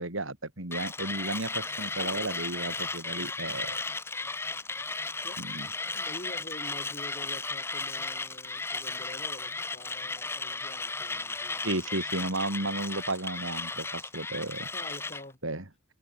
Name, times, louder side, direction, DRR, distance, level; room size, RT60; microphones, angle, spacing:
voice 1, 0.0-3.8 5.4-5.7 11.6-14.7 15.4-15.6, right 2 dB, 70° right, 3.7 m, -33 dB
Mechanisms, 0.7-15.2, left 3 dB, 10° left, 0.6 m, -35 dB
voice 2, 2.0-2.5 5.2-5.4 5.9-11.7 14.7-15.4, left 1 dB, 30° left, 7.8 m, -47 dB
head